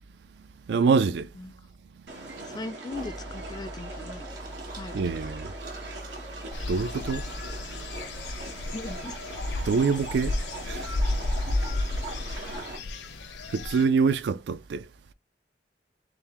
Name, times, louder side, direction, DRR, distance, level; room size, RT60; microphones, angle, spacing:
voice 1, 0.7-1.3 4.9-5.5 6.7-7.2 9.7-10.4 10.7-10.9 13.5-14.9, right 5 dB, 70° right, 0.3 m, -25 dB
sound 1, 2.1-12.8, right 2 dB, 90° right, 1.4 m, -41 dB
voice 2, 2.4-4.3 4.7-5.0 8.7-9.2, left 2 dB, 25° left, 0.3 m, -38 dB
sound 2, 2.9-8.0, right 1 dB, 50° right, 1.4 m, -42 dB
sound 3, 6.5-13.8, left 2 dB, 90° left, 0.7 m, -32 dB
3.8 x 3.5 x 2.9 m
head